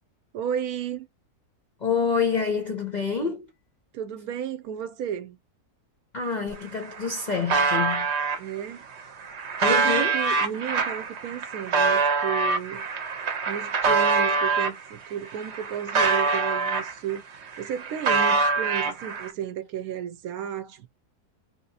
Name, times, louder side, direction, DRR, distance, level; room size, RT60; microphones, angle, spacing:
voice 1, 0.3-1.1 3.9-5.4 8.4-8.8 9.7-12.8 13.5-20.9, right 9 dB, 75° right, 1.1 m, -33 dB
voice 2, 1.8-3.5 6.1-8.1 9.6-10.2, left 5 dB, 50° left, 0.5 m, -27 dB
sound 1, 6.5-6.6 6.8-8.4 9.0-14.8 15.3-17.2 17.5-19.3, right 4 dB, 55° right, 1.0 m, -24 dB
3.1 x 2.8 x 2.7 m
omnidirectional pair, 1.6 m